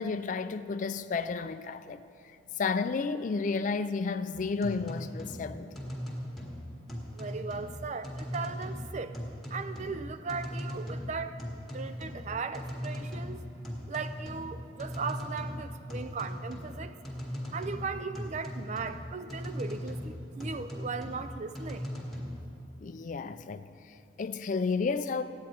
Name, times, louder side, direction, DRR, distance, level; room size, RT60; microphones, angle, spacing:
voice 1, 0.0-2.0 2.6-5.7 22.8-25.2, left 4 dB, 40° left, 0.4 m, -32 dB
sound 1, 4.3-22.5, equal, ahead, 1.7 m, -39 dB
voice 2, 7.1-9.2 9.5-11.4 11.7-13.4 13.9-17.0 17.5-21.9, right 4 dB, 40° right, 0.4 m, -37 dB
15.0 x 9.4 x 4.4 m
head